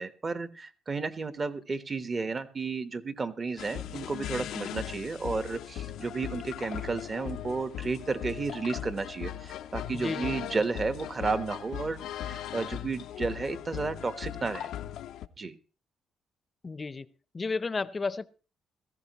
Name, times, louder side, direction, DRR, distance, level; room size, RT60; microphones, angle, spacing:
voice 1, 0.0-14.7 15.4-15.6, right 4 dB, 35° right, 1.2 m, -32 dB
sound 1, 3.6-15.3, left 11 dB, 80° left, 0.6 m, -38 dB
voice 2, 9.9-10.6 16.6-17.1 17.3-18.3, left 4 dB, 30° left, 0.7 m, -33 dB
17.0 x 14.5 x 3.0 m
cardioid pair, 90°, 0 cm